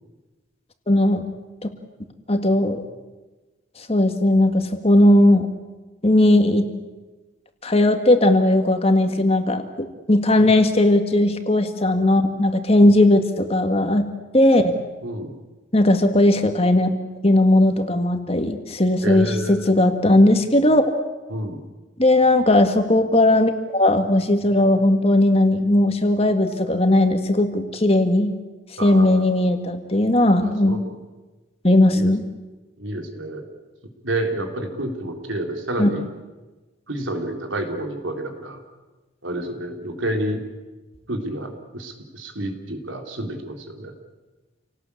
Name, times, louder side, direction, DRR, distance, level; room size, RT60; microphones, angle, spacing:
voice 1, 0.9-1.3 1.6-1.7 2.3-2.8 3.9-5.5 6.0-6.7 7.6-14.1 14.3-14.7 15.7-16.9 17.2-20.8 22.0-28.3 28.8-30.8 31.6-32.2 35.8-35.9, left 1 dB, 30° left, 6 dB, 1.9 m, -17 dB
voice 2, 15.0-15.4 19.0-19.7 21.3-21.6 28.8-29.5 30.4-30.9 31.9-32.1 32.8-33.4 34.0-36.1 36.9-38.6 39.2-40.4 41.1-43.9, right 1 dB, 90° right, 4 dB, 3.8 m, -29 dB
28.5 x 18.5 x 8.6 m, 1.2 s
head